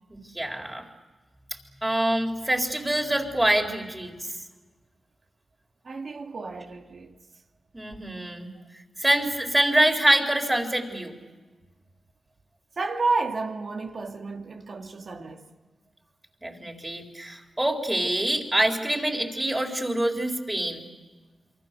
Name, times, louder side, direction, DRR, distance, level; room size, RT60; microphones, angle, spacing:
voice 1, 0.3-0.9 1.8-4.1 7.7-8.5 9.0-11.2 16.4-20.8, right 1 dB, 15° right, 4.2 m, -25 dB
voice 2, 5.8-7.1 12.8-15.5, right 3 dB, 55° right, 2.2 m, -31 dB
27.5 x 24.0 x 6.9 m
cardioid pair, 75°, 0 cm